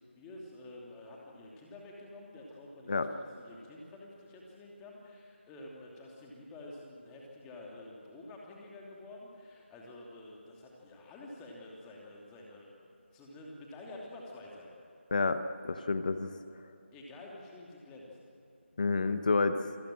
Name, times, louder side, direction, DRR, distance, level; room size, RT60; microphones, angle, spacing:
voice 1, 0.1-12.8 13.1-14.7 16.9-18.1, left 2 dB, 10° left, -2 dB, 2.7 m, -49 dB
voice 2, 15.1-16.3 18.8-19.7, left 3 dB, 40° left, 10 dB, 1.1 m, -29 dB
28.0 x 19.0 x 7.7 m, 2.9 s
figure-of-eight pair, 165°, 7 cm